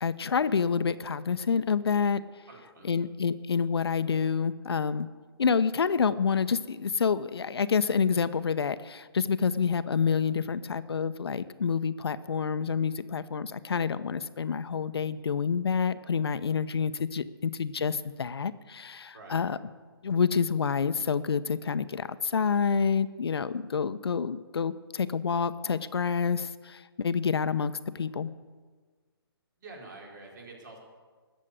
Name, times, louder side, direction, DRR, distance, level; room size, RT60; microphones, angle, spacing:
voice 1, 0.0-2.2 2.8-5.1 5.4-19.6 20.0-28.3, left 6 dB, 70° left, 14 dB, 0.8 m, -28 dB
voice 2, 2.5-2.9 19.1-19.4 29.6-30.8, right 2 dB, 50° right, 0 dB, 4.2 m, -47 dB
19.5 x 7.5 x 8.1 m, 1.5 s
hypercardioid pair, 145°, 13 cm